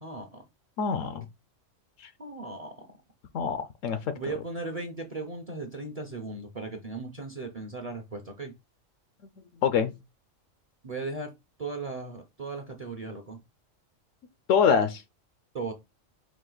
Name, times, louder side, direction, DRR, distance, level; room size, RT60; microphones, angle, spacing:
voice 1, 0.0-0.4 2.2-3.0 4.1-8.5 10.8-11.3 11.6-13.4 15.5-15.7, right 3 dB, 40° right, 0.6 m, -37 dB
voice 2, 0.8-1.3 2.0-2.1 3.3-4.1 9.6-9.9 14.5-15.0, left 6 dB, 80° left, 1.0 m, -25 dB
4.9 x 2.5 x 3.8 m
omnidirectional pair, 1.3 m